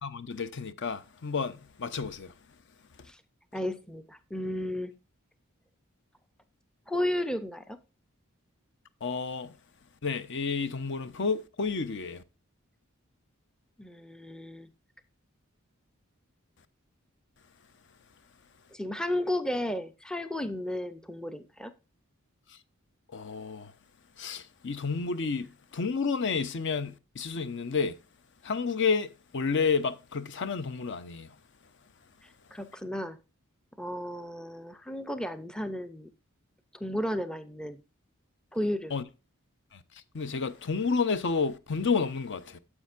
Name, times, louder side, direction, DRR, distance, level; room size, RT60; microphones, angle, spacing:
voice 1, 0.0-2.3 9.0-9.5 10.0-12.2 22.5-22.6 23.1-23.7 24.2-28.0 28.4-31.3 38.9-39.0 39.7-39.8 40.1-42.6, left 5 dB, 55° left, 0.7 m, -30 dB
voice 2, 3.5-4.9 6.9-7.8 13.8-14.7 18.7-21.7 32.2-33.2 33.8-36.1 36.7-37.8 38.5-38.9, left 1 dB, 5° left, 0.5 m, -33 dB
9.8 x 7.4 x 2.5 m
head